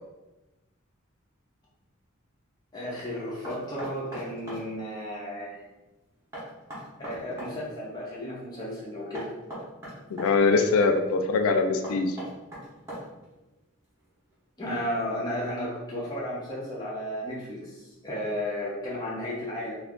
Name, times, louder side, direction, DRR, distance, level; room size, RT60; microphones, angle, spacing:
voice 1, 2.7-5.6 7.0-9.3 14.6-19.8, equal, 20° left, -7 dB, 0.5 m, -33 dB
Knock, 3.4-4.7 6.3-7.6 9.1-10.3 11.8-13.3, right 1 dB, 10° right, 0.8 m, -39 dB
voice 2, 10.1-12.2, left 4 dB, 80° left, 6 dB, 0.3 m, -23 dB
2.4 x 2.3 x 3.5 m, 1.1 s
head